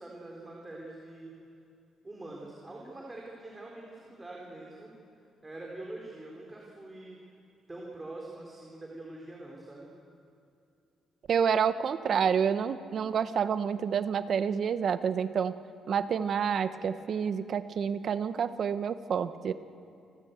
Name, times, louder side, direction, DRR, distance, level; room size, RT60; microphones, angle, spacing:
voice 1, 0.0-1.4 2.0-4.9 5.4-7.2 7.7-9.9, right 2 dB, 20° right, -2 dB, 3.9 m, -44 dB
voice 2, 11.3-15.5 15.9-19.5, right 7 dB, 55° right, 12 dB, 0.8 m, -28 dB
29.0 x 14.0 x 8.1 m, 2.5 s
cardioid pair, 90°, 0 cm